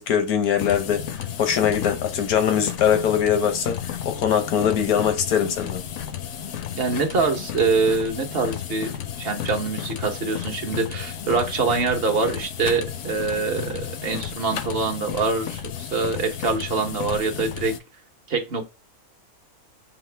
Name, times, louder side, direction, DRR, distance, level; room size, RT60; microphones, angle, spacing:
voice 1, 0.0-5.8, left 8 dB, 85° left, 1.4 m, -22 dB
sound 1, 0.6-17.8, left 9 dB, 65° left, 0.9 m, -33 dB
voice 2, 6.8-17.7 18.3-18.7, right 4 dB, 45° right, 1.0 m, -24 dB
5.7 x 2.4 x 3.2 m
omnidirectional pair, 1.5 m